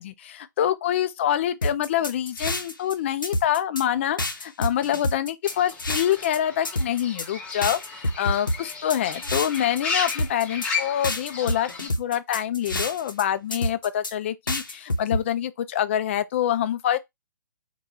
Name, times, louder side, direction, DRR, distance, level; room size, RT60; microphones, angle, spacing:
voice 1, 0.0-17.0, left 11 dB, 35° left, 0.4 m, -26 dB
sound 1, 1.6-2.9 3.2-3.8 4.2-6.4 6.6-7.3 7.6-9.8 10.1-10.7 11.0-13.2 13.5-14.1 14.5-15.2, left 1 dB, 80° left, 0.7 m, -28 dB
Fowl / Bird, 5.4-11.9, left 5 dB, 10° left, 0.8 m, -34 dB
4.4 x 2.2 x 2.7 m
figure-of-eight pair, 125°, 11 cm